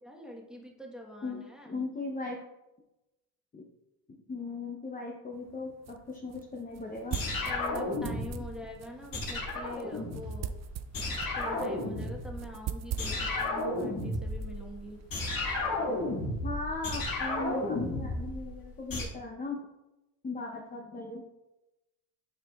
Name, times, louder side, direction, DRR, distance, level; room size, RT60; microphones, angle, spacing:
voice 1, 0.0-1.8 7.5-10.5 11.3-15.0 20.7-20.8, left 1 dB, ahead, -1 dB, 1.3 m, -45 dB
voice 2, 1.2-2.4 3.5-3.6 4.3-7.2 16.4-19.7 20.2-21.2, left 3 dB, 20° left, -1 dB, 0.8 m, -38 dB
sound 1, 5.3-15.2, right 9 dB, 40° right, 0.4 m, -43 dB
sound 2, 7.1-8.6 9.1-10.7 10.9-12.5 13.0-19.1, left 2 dB, 50° left, 2.0 m, -33 dB
9.2 x 4.9 x 2.4 m, 0.97 s
cardioid pair, 100°, 44 cm